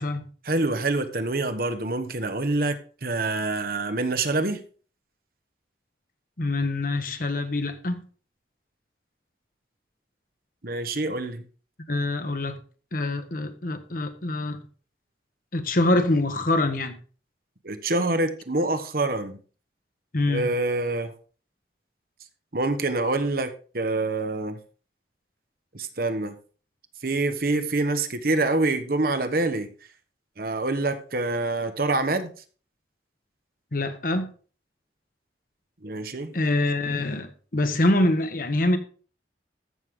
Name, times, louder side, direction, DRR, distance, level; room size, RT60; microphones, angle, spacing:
voice 1, 0.4-4.6 10.6-11.4 17.6-19.4 20.3-21.1 22.5-24.6 25.7-26.4 27.0-29.7 30.4-32.3 35.8-36.3, right 2 dB, 55° right, 1.1 m, -26 dB
voice 2, 6.4-8.0 11.9-12.6 12.9-14.6 15.5-17.0 20.1-20.6 33.7-34.3 36.3-38.8, left 2 dB, 50° left, 1.2 m, -25 dB
14.0 x 6.5 x 3.7 m
head